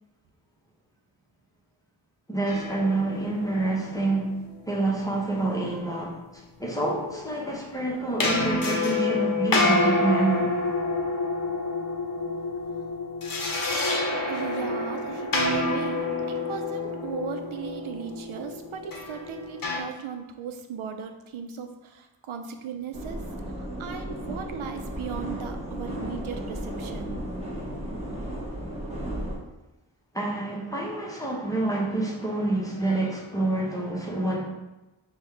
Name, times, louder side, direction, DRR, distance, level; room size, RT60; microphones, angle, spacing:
voice 1, 2.3-4.3 4.7-10.6 30.1-34.5, right 2 dB, 5° left, -4 dB, 0.8 m, -27 dB
sound 1, 2.5-4.6 8.2-19.8, left 3 dB, 45° left, 0.8 m, -28 dB
voice 2, 14.3-27.2, right 7 dB, 85° right, 6 dB, 0.6 m, -37 dB
sound 2, 22.9-29.4, right 1 dB, 15° right, 1.0 m, -34 dB
5.4 x 2.3 x 3.2 m, 1.0 s
wide cardioid pair, 85°, 47 cm